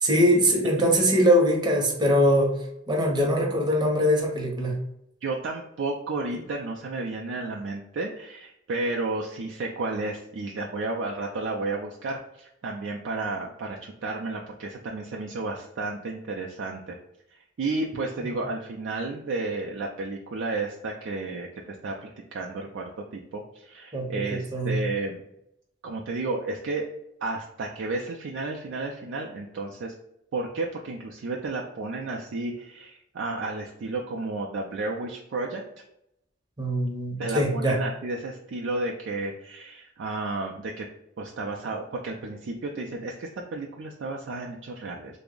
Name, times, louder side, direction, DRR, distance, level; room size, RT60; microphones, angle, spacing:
voice 1, 0.0-2.5 2.9-4.8 18.2-18.3 23.9-24.8 36.6-37.8, equal, 20° right, 0 dB, 0.7 m, -22 dB
voice 2, 5.2-17.0 17.3-25.2 25.8-26.8 27.2-29.9 30.3-35.6 37.2-40.9 41.2-45.2, right 3 dB, 70° right, -1 dB, 0.4 m, -32 dB
3.3 x 2.0 x 3.7 m, 0.80 s
head